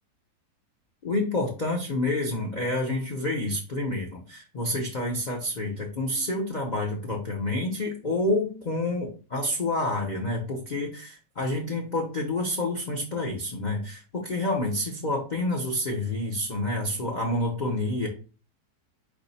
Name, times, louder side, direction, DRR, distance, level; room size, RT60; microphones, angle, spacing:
voice 1, 1.0-18.1, left 1 dB, 50° left, 1 dB, 0.5 m, -28 dB
4.7 x 2.7 x 4.1 m, 0.36 s
omnidirectional pair, 1.9 m